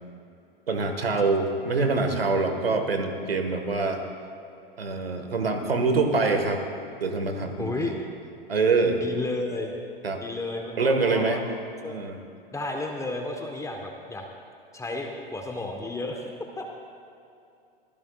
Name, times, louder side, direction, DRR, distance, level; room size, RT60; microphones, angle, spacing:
voice 1, 0.7-4.0 4.8-6.6 7.0-7.9 8.5-9.0 10.0-10.2 10.8-11.4 11.8-12.2, right 3 dB, 80° right, 6 dB, 1.6 m, -25 dB
voice 2, 7.6-7.9 9.0-9.7 10.2-11.4 11.8-12.0 12.5-14.3 14.7-16.3 16.6-16.7, left 2 dB, 10° left, 2 dB, 1.2 m, -32 dB
24.5 x 15.5 x 2.4 m, 2.6 s
figure-of-eight pair, 95°, 29 cm